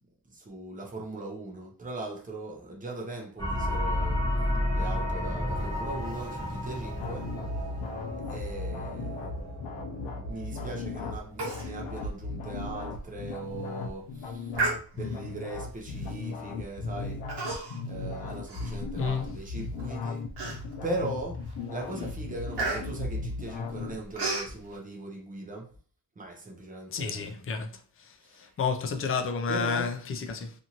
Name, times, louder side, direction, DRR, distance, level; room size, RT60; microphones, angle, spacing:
voice 1, 0.3-4.2 4.7-7.3 8.3-9.3 10.2-14.7 14.9-17.2 17.9-20.3 20.8-25.7 26.2-27.3 28.2-28.5 29.5-29.9, right 2 dB, 20° right, 0.7 m, -39 dB
sound 1, 3.4-11.4, left 1 dB, 10° left, 0.9 m, -32 dB
sound 2, 7.0-24.0, left 3 dB, 80° left, 0.6 m, -37 dB
Human voice, 11.4-11.7 12.0-12.1 12.6-12.8 13.3-13.6 14.5-15.3 16.0-16.3 17.3-17.9 18.3-19.3 19.8-19.9 20.4-20.9 21.4-21.6 21.9-24.5, right 3 dB, 75° right, 1.1 m, -33 dB
voice 2, 19.0-19.3 26.9-27.7 28.0-30.5, left 5 dB, 35° left, 0.4 m, -31 dB
2.6 x 2.6 x 2.8 m
wide cardioid pair, 145°, 41 cm